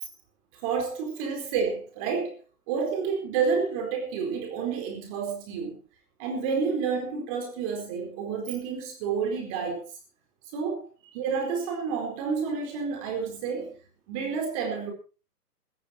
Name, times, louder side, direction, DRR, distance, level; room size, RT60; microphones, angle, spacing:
voice 1, 0.6-2.4 2.7-5.8 6.2-9.8 10.5-10.8 11.1-13.7 14.1-14.9, right 5 dB, 20° right, 4.4 m, -29 dB
17.5 x 14.5 x 4.4 m
hypercardioid pair, 175°, 46 cm